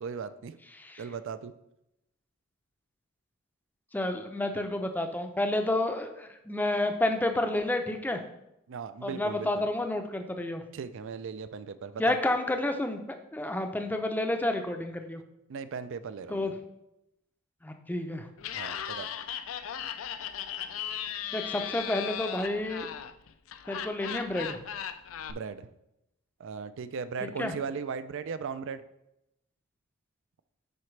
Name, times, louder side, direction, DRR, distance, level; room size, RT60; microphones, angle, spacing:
voice 1, 0.0-0.6 1.0-1.5 8.7-9.6 10.7-12.2 15.5-16.5 18.6-19.1 25.3-25.7 26.4-28.8, right 5 dB, 60° right, 13 dB, 0.4 m, -37 dB
voice 2, 3.9-8.2 9.0-10.6 12.0-13.0 13.3-15.2 16.3-16.5 17.6-18.3 21.3-22.9 23.7-24.6 27.4-27.5, left 1 dB, 10° left, 5 dB, 0.5 m, -30 dB
Laughter, 18.4-25.3, left 9 dB, 65° left, 0.4 m, -37 dB
10.5 x 4.3 x 3.2 m, 0.86 s
head